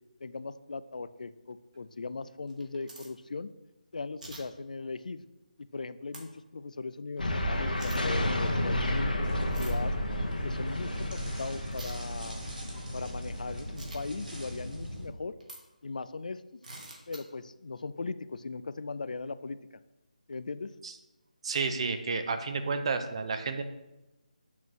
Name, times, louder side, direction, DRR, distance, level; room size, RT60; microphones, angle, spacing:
voice 1, 0.2-3.5 3.9-5.2 5.7-9.9 10.4-12.5 12.9-15.3 15.8-16.6 17.1-19.6 20.3-20.7, left 4 dB, 65° left, 14 dB, 0.3 m, -39 dB
sound 1, 2.5-3.1 4.2-4.4 6.1-6.2 7.8-8.0 9.5-9.8 11.7-11.9 13.8-14.0 15.4-15.6 16.6-17.2, right 2 dB, 65° right, 1.5 m, -46 dB
sound 2, 7.2-14.2, left 1 dB, 90° left, 1.2 m, -32 dB
sound 3, 9.2-15.1, equal, 85° right, 2.1 m, -41 dB
voice 2, 21.4-23.6, right 4 dB, 40° right, 8 dB, 0.6 m, -31 dB
7.3 x 5.9 x 3.0 m, 0.98 s
figure-of-eight pair, 155°, 5 cm